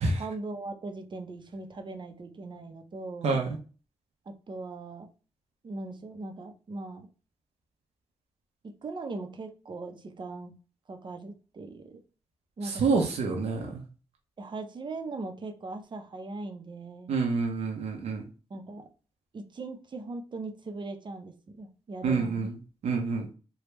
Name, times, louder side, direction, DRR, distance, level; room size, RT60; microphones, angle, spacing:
voice 1, 0.0-3.4 4.3-5.1 5.6-7.0 8.8-10.5 10.9-12.0 12.6-12.8 14.4-17.2 18.5-18.9 19.3-22.5, right 3 dB, 45° right, 6 dB, 0.7 m, -39 dB
voice 2, 12.6-13.8 17.1-18.2 22.0-22.5 22.8-23.3, right 4 dB, 80° right, 1 dB, 0.8 m, -27 dB
3.4 x 2.3 x 3.0 m, 0.35 s
cardioid pair, 75°, 11 cm